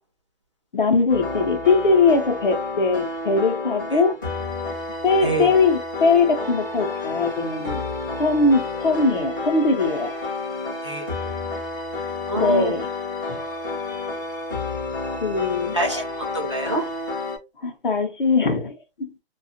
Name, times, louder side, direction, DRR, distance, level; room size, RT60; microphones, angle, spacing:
voice 1, 0.7-4.4 5.0-7.8 8.2-10.1 12.3-12.9 13.3-13.4 15.2-15.7 17.6-19.1, left 3 dB, 50° left, 0.8 m, -21 dB
sound 1, 1.1-17.4, left 3 dB, 20° left, 0.6 m, -30 dB
voice 2, 12.3-12.7 15.7-16.8, right 1 dB, 30° right, 0.4 m, -25 dB
2.4 x 2.3 x 2.7 m
hypercardioid pair, 175°, 32 cm